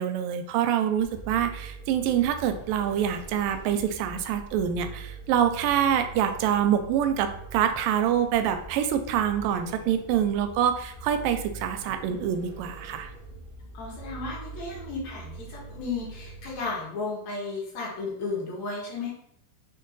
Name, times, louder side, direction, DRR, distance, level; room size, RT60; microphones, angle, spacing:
voice 1, 0.0-13.1, right 9 dB, 85° right, 8 dB, 2.2 m, -26 dB
Vehicle, 1.0-16.9, right 3 dB, 60° right, 0.4 m, -43 dB
voice 2, 13.7-19.1, left 3 dB, 65° left, -3 dB, 2.0 m, -34 dB
6.2 x 2.1 x 3.9 m, 0.73 s
omnidirectional pair, 4.0 m